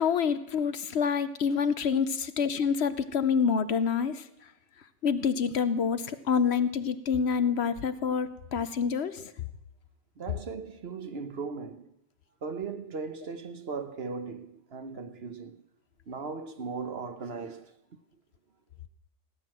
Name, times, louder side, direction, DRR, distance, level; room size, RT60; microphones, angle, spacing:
voice 1, 0.0-4.3 5.0-9.3, left 6 dB, 65° left, 1.0 m, -27 dB
voice 2, 10.2-11.9 12.4-15.6 16.1-17.7, right 5 dB, 55° right, 1.3 m, -38 dB
17.5 x 9.6 x 7.5 m
omnidirectional pair, 1.2 m